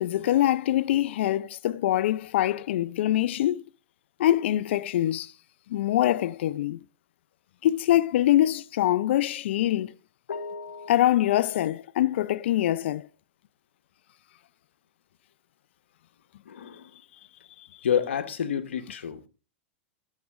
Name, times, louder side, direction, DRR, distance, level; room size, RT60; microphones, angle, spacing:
voice 1, 0.0-3.6 4.2-5.3 5.7-6.8 7.6-9.9 10.9-13.1, left 13 dB, 75° left, 0.5 m, -24 dB
voice 2, 10.3-11.0 16.5-16.9 17.8-19.3, left 8 dB, 90° left, 1.2 m, -29 dB
13.5 x 7.5 x 3.6 m
hypercardioid pair, 120°, 6 cm